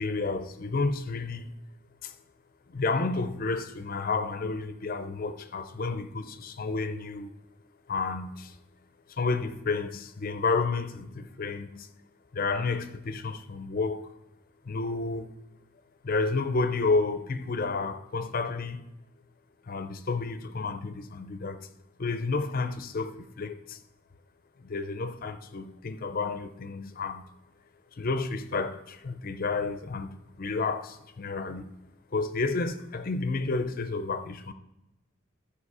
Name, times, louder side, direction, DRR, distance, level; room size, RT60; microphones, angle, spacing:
voice 1, 0.0-1.5 2.0-2.1 2.7-7.3 7.9-8.6 9.1-11.9 12.3-14.1 14.7-15.3 16.0-18.8 19.7-21.7 22.0-23.8 24.6-27.3 27.9-30.1 30.4-31.7 32.1-34.5, left 3 dB, 45° left, 0.5 m, -31 dB
14.5 x 5.0 x 4.8 m
head